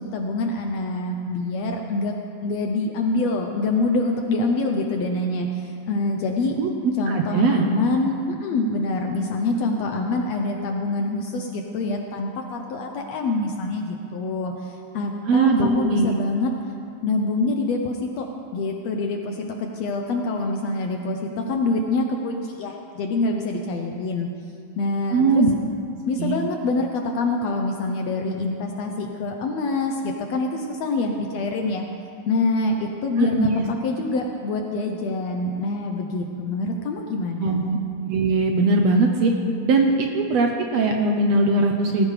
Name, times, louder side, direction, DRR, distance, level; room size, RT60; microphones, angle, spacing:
voice 1, 0.0-2.1 2.4-6.6 7.0-16.5 17.0-18.3 18.5-24.3 24.8-25.4 26.1-31.8 32.3-33.5 33.8-37.6, left 2 dB, 70° left, 2 dB, 1.6 m, -25 dB
voice 2, 6.6-7.6 15.3-16.1 25.1-25.5 26.2-26.4 33.2-33.7 37.4-37.8 38.0-39.3 39.6-42.1, right 3 dB, 70° right, 2 dB, 1.7 m, -20 dB
18.5 x 14.5 x 3.3 m, 2.5 s
omnidirectional pair, 3.7 m